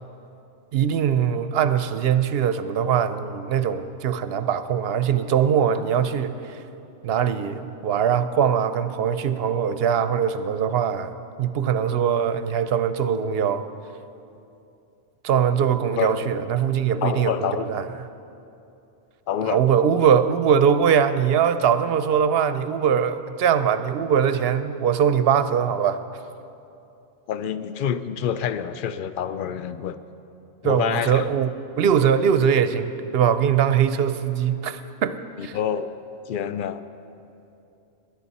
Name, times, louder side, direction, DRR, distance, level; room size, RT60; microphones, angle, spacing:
voice 1, 0.7-6.6 7.0-13.6 15.2-17.9 19.4-26.0 30.6-31.5 31.8-35.5, right 8 dB, 60° right, 11 dB, 0.7 m, -22 dB
voice 2, 17.0-17.9 19.3-19.6 27.3-30.0 30.6-31.2 35.4-35.9 36.3-36.8, left 8 dB, 60° left, 12 dB, 0.6 m, -27 dB
20.0 x 10.5 x 4.1 m, 2.8 s
omnidirectional pair, 1.3 m